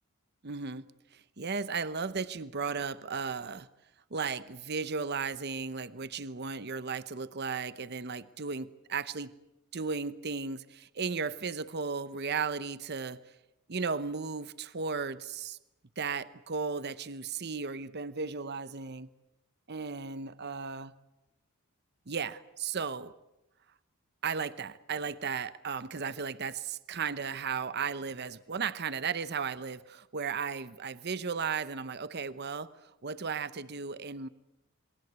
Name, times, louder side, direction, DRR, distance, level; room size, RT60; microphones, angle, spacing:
voice 1, 0.4-0.9 1.1-3.7 4.1-9.3 9.7-13.2 13.7-15.6 16.0-19.1 19.7-20.9 22.1-23.1 24.2-34.3, right 5 dB, 50° right, 15 dB, 0.9 m, -35 dB
28.0 x 23.0 x 8.2 m, 0.92 s
head